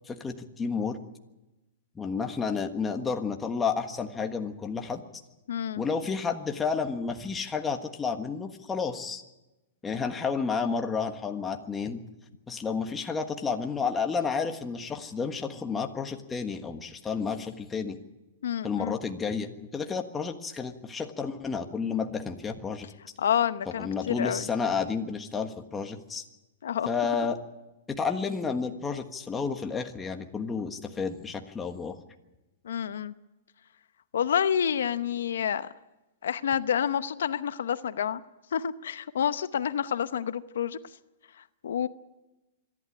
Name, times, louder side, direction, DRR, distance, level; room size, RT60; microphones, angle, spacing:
voice 1, 0.1-1.0 1.9-5.0 5.8-9.2 9.8-12.0 12.5-18.0 18.6-22.9 23.8-26.2 26.9-27.4 27.9-32.0, left 5 dB, 15° left, 5 dB, 1.4 m, -31 dB
voice 2, 5.5-5.8 18.4-19.0 23.2-24.5 26.6-26.9 32.6-33.1 34.1-35.7 36.2-38.2 38.5-40.8 41.4-41.9, left 8 dB, 80° left, 13 dB, 0.8 m, -28 dB
25.5 x 11.5 x 9.9 m, 1.0 s
hypercardioid pair, 150°, 0 cm